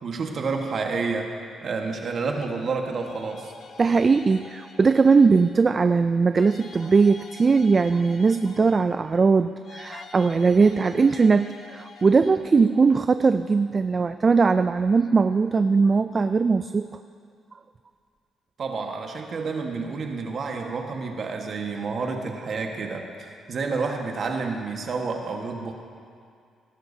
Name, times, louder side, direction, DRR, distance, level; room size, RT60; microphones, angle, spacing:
voice 1, 0.0-1.3 1.6-3.5 18.6-25.7, right 4 dB, 50° right, 2 dB, 1.4 m, -29 dB
sound 1, 2.9-5.7 6.3-9.1 9.6-12.6, left 4 dB, 55° left, 0.8 m, -47 dB
voice 2, 3.8-16.9, right 4 dB, 35° right, 10 dB, 0.3 m, -20 dB
18.5 x 11.5 x 2.7 m, 2.3 s
cardioid pair, 90°, 0 cm